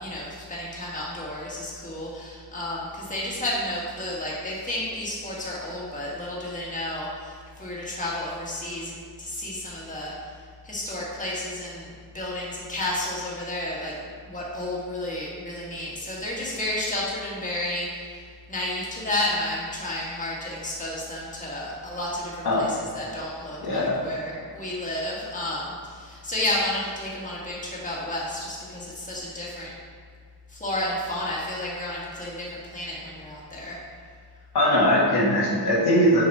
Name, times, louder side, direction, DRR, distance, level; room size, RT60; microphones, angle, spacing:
voice 1, 0.0-10.1 10.6-13.9 14.2-18.2 18.5-29.7 30.5-33.8, left 1 dB, 20° left, -6 dB, 1.8 m, -31 dB
voice 2, 23.6-23.9 34.5-36.2, equal, 75° left, -5 dB, 1.7 m, -20 dB
6.7 x 4.8 x 4.3 m, 2.1 s
cardioid pair, 95°, 38 cm